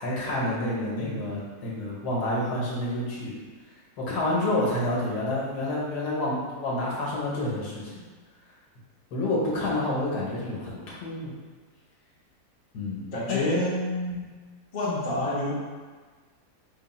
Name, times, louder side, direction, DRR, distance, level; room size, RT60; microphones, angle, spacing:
voice 1, 0.0-3.4 4.0-7.9 9.1-11.3 12.7-13.4, left 1 dB, 85° left, -4 dB, 1.5 m, -29 dB
voice 2, 13.1-14.2 14.7-15.5, left 1 dB, 35° left, -8 dB, 0.9 m, -28 dB
3.5 x 2.3 x 4.1 m, 1.4 s
omnidirectional pair, 1.7 m